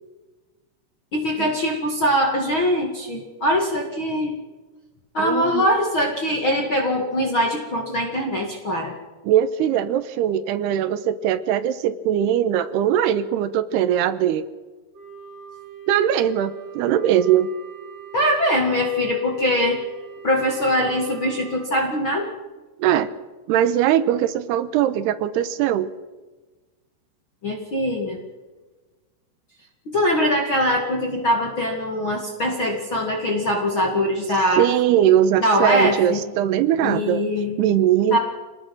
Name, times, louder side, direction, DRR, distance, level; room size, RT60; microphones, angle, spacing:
voice 1, 1.1-4.4 5.1-8.9 18.1-19.8 20.2-22.3 27.4-28.2 29.9-34.7 35.4-36.2 36.8-37.6 38.1-38.2, equal, 40° left, 1 dB, 1.9 m, -22 dB
voice 2, 5.2-5.7 9.3-14.5 15.9-17.5 22.8-23.1 23.5-25.9 34.6-37.2 37.6-38.2, right 10 dB, 75° right, 11 dB, 2.7 m, -20 dB
Wind instrument woodwind instrument, 14.9-21.6, right 9 dB, 35° right, 7.3 m, -41 dB
26.0 x 19.5 x 6.1 m, 1.2 s
omnidirectional pair, 5.4 m